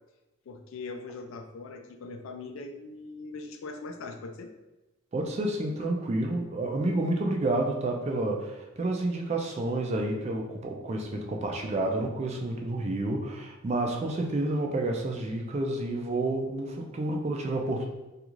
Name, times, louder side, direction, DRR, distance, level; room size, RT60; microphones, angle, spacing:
voice 1, 0.5-4.5, left 3 dB, 70° left, 5 dB, 0.3 m, -41 dB
voice 2, 5.1-17.9, right 2 dB, 30° right, 1 dB, 0.3 m, -29 dB
2.4 x 2.3 x 3.0 m, 1.1 s
head